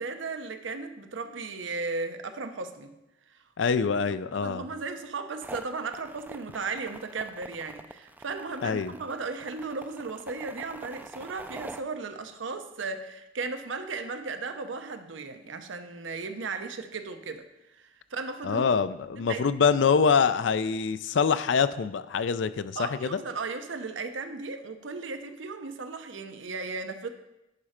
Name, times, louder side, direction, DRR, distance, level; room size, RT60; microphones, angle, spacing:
voice 1, 0.0-3.0 3.3-3.4 4.3-18.7 19.2-19.4 22.8-27.1, right 4 dB, 85° right, 7 dB, 0.7 m, -36 dB
voice 2, 3.6-4.6 8.6-8.9 18.4-23.2, left 6 dB, 70° left, 14 dB, 0.4 m, -25 dB
sound 1, 5.4-11.8, right 2 dB, 10° right, 0.3 m, -45 dB
10.5 x 4.3 x 5.0 m, 0.93 s
head